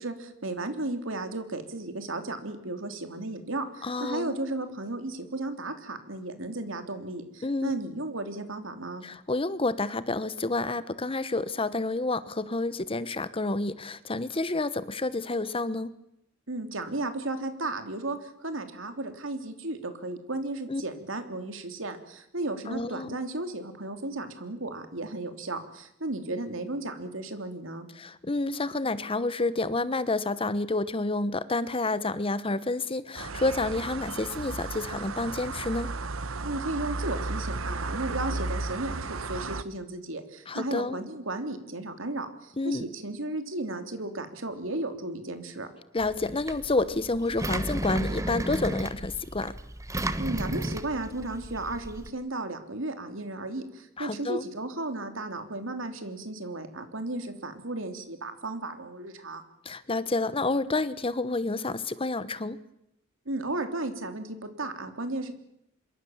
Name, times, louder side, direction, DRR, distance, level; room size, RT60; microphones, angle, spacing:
voice 1, 0.0-9.0 16.5-27.9 36.4-45.7 50.2-59.4 63.2-65.3, right 2 dB, 70° right, 8 dB, 3.2 m, -34 dB
voice 2, 3.8-4.4 7.4-7.8 9.0-15.9 20.7-20.8 22.7-23.2 28.0-35.9 40.5-41.0 42.6-42.8 45.9-49.6 54.0-54.4 59.6-62.6, left 2 dB, 25° left, 15 dB, 1.0 m, -29 dB
sound 1, 33.2-39.6, right 3 dB, 90° right, 1.1 m, -34 dB
Engine, 46.0-52.1, right 1 dB, 15° right, 1.1 m, -34 dB
26.0 x 23.0 x 7.3 m, 0.80 s
head